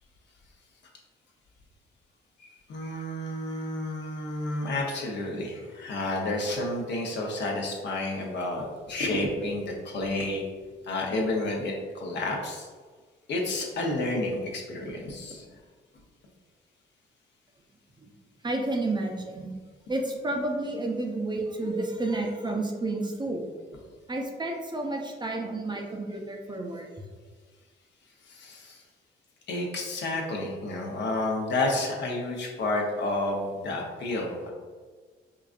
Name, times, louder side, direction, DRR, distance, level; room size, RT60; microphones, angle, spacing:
voice 1, 2.4-10.4 10.9-12.7 13.3-15.4 28.3-28.8 29.5-34.5, left 2 dB, 65° left, 0 dB, 0.8 m, -30 dB
voice 2, 18.4-19.5 19.9-23.4 24.1-26.9, right 2 dB, 20° right, 1 dB, 0.5 m, -30 dB
4.8 x 2.5 x 2.4 m, 1.5 s
cardioid pair, 90°, 20 cm